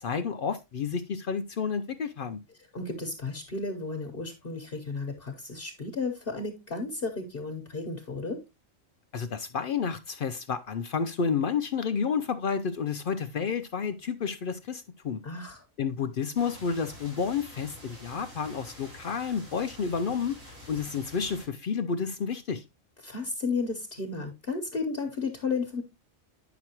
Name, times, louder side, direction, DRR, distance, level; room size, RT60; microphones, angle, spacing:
voice 1, 0.0-2.4 9.1-15.2 15.8-22.6, left 6 dB, 65° left, 0.5 m, -30 dB
voice 2, 2.7-8.4 15.2-15.6 23.0-25.8, left 4 dB, 45° left, 1.1 m, -33 dB
sound 1, 16.3-21.5, equal, 70° right, 4.7 m, -48 dB
9.2 x 6.0 x 2.9 m
omnidirectional pair, 1.4 m